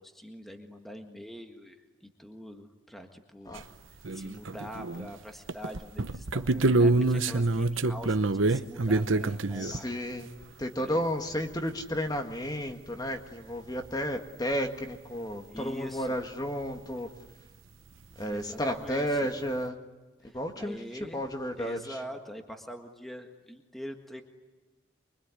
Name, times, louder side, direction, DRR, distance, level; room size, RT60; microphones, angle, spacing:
voice 1, 0.0-3.6 4.1-10.0 10.8-11.0 15.5-16.2 18.3-19.3 20.2-21.2 21.6-24.2, equal, ahead, 4 dB, 1.6 m, -44 dB
sound 1, 3.6-3.7 4.0-5.1 5.5-9.8 12.4-12.5 12.7-12.8 13.8-13.9 14.5-14.6 18.2-18.3 18.5-18.9, right 2 dB, 75° right, 1.0 m, -26 dB
voice 2, 9.6-10.3 10.6-17.1 18.2-19.7 20.3-20.8 21.1-22.0, equal, 20° left, 5 dB, 1.8 m, -32 dB
25.0 x 24.0 x 9.7 m, 1.2 s
head